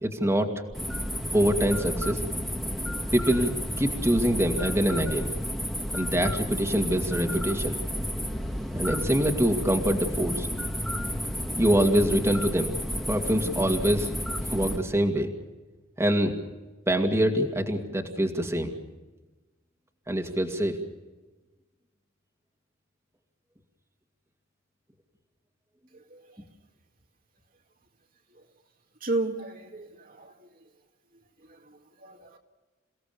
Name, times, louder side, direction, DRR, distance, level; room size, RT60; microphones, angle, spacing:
voice 1, 0.0-0.5 1.3-2.2 3.1-3.5 3.8-5.3 5.9-7.8 8.7-10.5 11.5-12.7 13.1-14.1 14.5-15.3 16.0-16.3 16.9-18.7 20.1-20.8, equal, 15° right, 3 dB, 2.3 m, -24 dB
sound 1, 0.7-14.8, equal, ahead, 1.9 m, -31 dB
voice 2, 29.0-30.3 31.5-32.4, right 2 dB, 50° right, 2 dB, 2.2 m, -33 dB
29.0 x 17.0 x 6.9 m, 1.2 s
head